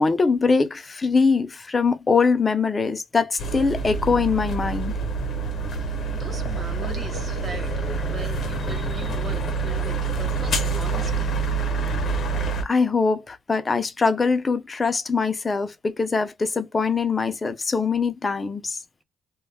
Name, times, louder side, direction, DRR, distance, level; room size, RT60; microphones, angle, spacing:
voice 1, 0.0-4.9 12.2-18.8, left 4 dB, 30° left, 0.5 m, -23 dB
sound 1, 3.4-12.6, right 4 dB, 60° left, 0.8 m, -26 dB
voice 2, 5.7-11.7 12.5-12.6, right 2 dB, 40° right, 1.1 m, -40 dB
2.3 x 2.1 x 3.3 m
cardioid pair, 90°, 0 cm